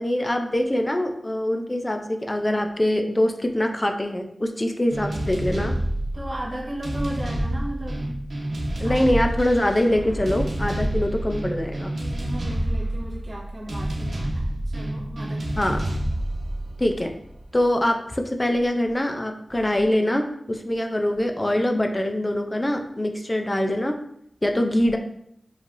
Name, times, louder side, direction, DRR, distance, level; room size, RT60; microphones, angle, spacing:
voice 1, 0.0-5.7 8.8-11.9 15.6-15.8 16.8-17.1 17.5-24.0 24.4-25.0, left 1 dB, 25° left, 4 dB, 0.5 m, -23 dB
sound 1, 4.9-17.6, right 1 dB, 80° right, 1.0 m, -28 dB
voice 2, 6.1-8.2 8.8-9.2 12.0-15.4, right 1 dB, 35° right, -5 dB, 1.3 m, -35 dB
5.2 x 3.3 x 2.6 m, 0.70 s
wide cardioid pair, 80°, 0 cm